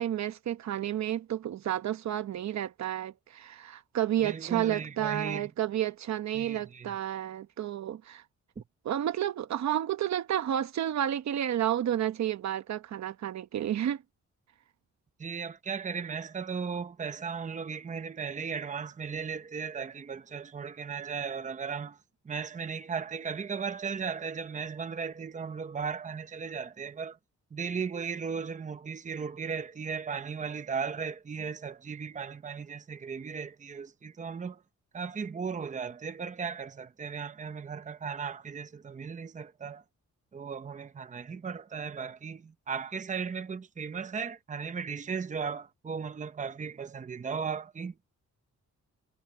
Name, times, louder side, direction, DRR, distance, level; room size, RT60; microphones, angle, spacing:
voice 1, 0.0-8.2 8.8-14.0, right 11 dB, 65° right, 0.9 m, -31 dB
voice 2, 4.2-5.5 6.3-7.0 8.6-8.7 15.2-22.0 22.2-27.2 27.5-34.6 34.9-39.8 40.3-47.9, right 6 dB, 25° right, 0.9 m, -36 dB
wide cardioid pair, 145°, 29 cm